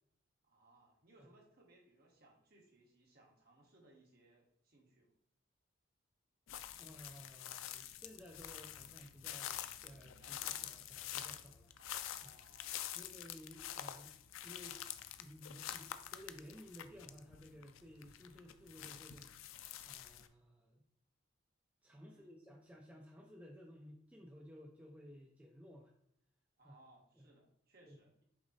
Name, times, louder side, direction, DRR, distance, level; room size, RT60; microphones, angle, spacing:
voice 1, 0.4-5.1 10.2-10.8 11.8-13.0 22.0-22.3 26.6-28.2, right 2 dB, 50° right, 0 dB, 1.1 m, -66 dB
sound 1, 6.5-20.3, left 11 dB, 85° left, 0.3 m, -47 dB
voice 2, 6.8-11.7 12.2-12.4 12.9-14.1 14.4-14.8 15.2-19.4 19.9-20.8 21.8-25.9 26.6-26.8 27.2-27.3 27.8-28.0, equal, 5° right, 0 dB, 0.4 m, -56 dB
Piano, 9.5-15.7, equal, 65° left, 1.2 m, -72 dB
6.0 x 2.0 x 4.0 m, 0.75 s
head